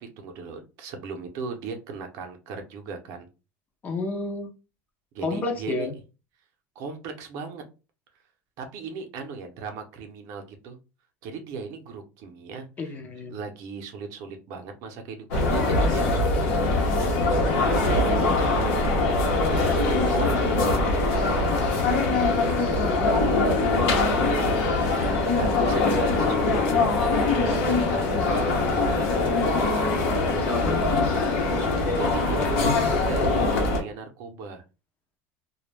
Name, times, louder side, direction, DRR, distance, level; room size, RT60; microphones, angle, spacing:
voice 1, 0.0-3.3 5.1-5.9 6.8-7.6 8.6-10.8 11.2-13.0 13.3-20.4 21.1-21.5 21.9-23.4 24.7-30.2 32.0-33.3 33.6-34.6, right 4 dB, 55° right, 0.7 m, -38 dB
voice 2, 3.8-4.5 5.2-5.9 12.8-13.4 30.6-31.1 32.3-32.5, left 3 dB, 25° left, 0.5 m, -31 dB
sound 1, 15.3-33.8, left 3 dB, 75° left, 0.8 m, -22 dB
2.2 x 2.1 x 3.2 m
supercardioid pair, 140°, 7 cm